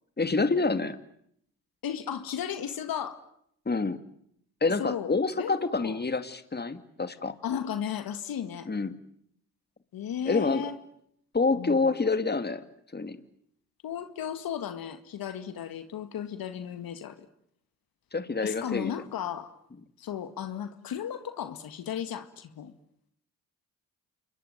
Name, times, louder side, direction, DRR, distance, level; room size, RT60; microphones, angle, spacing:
voice 1, 0.2-1.0 3.7-4.0 4.6-7.3 8.7-9.0 10.3-10.6 11.3-12.6 12.9-13.2 18.1-18.9, left 3 dB, 25° left, 11 dB, 2.4 m, -27 dB
voice 2, 1.8-3.2 4.8-6.0 7.4-8.7 9.9-10.7 11.5-11.9 13.8-17.2 18.4-19.5 20.0-22.7, left 9 dB, 70° left, 10 dB, 2.0 m, -35 dB
28.0 x 22.5 x 9.3 m, 0.71 s
supercardioid pair, 50°, 37 cm